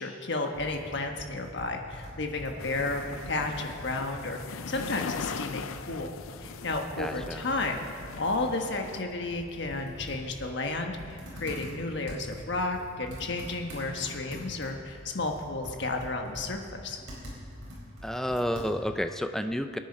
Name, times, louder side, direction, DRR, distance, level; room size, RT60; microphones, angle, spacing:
voice 1, 0.0-6.1 6.4-7.8 8.1-17.0, left 2 dB, 55° left, 3 dB, 1.4 m, -32 dB
Computer keyboard, 0.5-19.0, equal, 55° right, 4.8 m, -45 dB
sound 1, 2.6-9.0, left 6 dB, 75° left, 0.5 m, -40 dB
voice 2, 7.0-7.5 18.0-19.8, equal, ahead, 8 dB, 0.5 m, -30 dB
24.5 x 9.2 x 5.5 m, 2.5 s
head